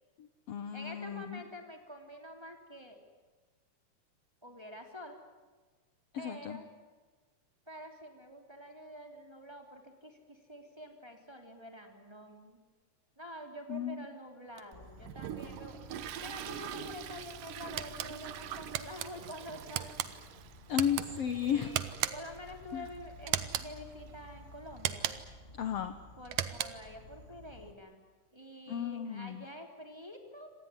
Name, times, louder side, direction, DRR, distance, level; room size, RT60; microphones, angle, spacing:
voice 1, 0.2-1.4 6.1-6.6 13.7-14.1 20.7-21.7 22.7-22.9 25.6-26.0 28.7-29.5, left 9 dB, 60° left, 10 dB, 1.7 m, -34 dB
voice 2, 0.7-3.0 4.4-5.2 6.2-6.7 7.7-12.6 13.2-15.8 16.2-19.9 21.1-21.8 22.1-25.2 26.2-28.0 28.3-30.5, left 1 dB, 10° right, 3 dB, 2.8 m, -47 dB
Toilet flush, 14.6-24.8, right 10 dB, 90° right, 2.8 m, -46 dB
Insect, 14.7-27.7, left 2 dB, 35° left, 1.1 m, -54 dB
sound 1, 17.8-18.1 18.7-19.1 19.7-20.1 20.7-21.1 21.7-22.4 23.3-23.7 24.8-25.4 26.3-26.9, right 12 dB, 70° right, 2.3 m, -35 dB
26.0 x 19.0 x 9.8 m, 1.4 s
omnidirectional pair, 3.7 m